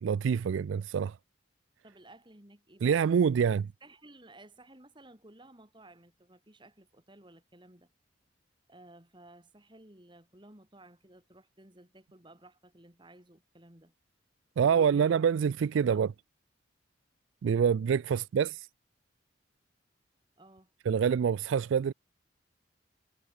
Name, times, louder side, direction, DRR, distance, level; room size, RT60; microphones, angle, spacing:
voice 1, 0.0-1.1 2.8-3.7 14.6-16.1 17.4-18.6 20.9-21.9, right 7 dB, 75° right, 0.3 m, -26 dB
voice 2, 1.8-3.0 3.8-7.9 8.7-13.9 14.6-15.1 15.8-16.1 20.4-20.7, right 1 dB, 25° right, 3.0 m, -55 dB
head